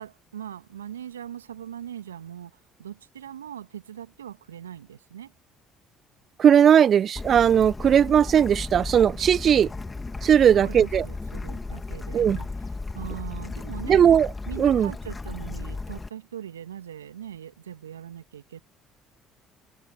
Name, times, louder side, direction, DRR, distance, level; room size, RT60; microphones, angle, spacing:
voice 1, 0.0-5.3 10.3-12.5 12.9-14.0 14.5-18.6, right 10 dB, 85° right, 2.1 m, -40 dB
voice 2, 6.4-9.7 10.2-11.1 12.1-12.4 13.9-14.3 14.6-14.9, right 8 dB, 45° right, 1.2 m, -18 dB
Bird / Stream, 7.2-16.1, left 3 dB, 20° left, 2.8 m, -35 dB
figure-of-eight pair, 55°, 0 cm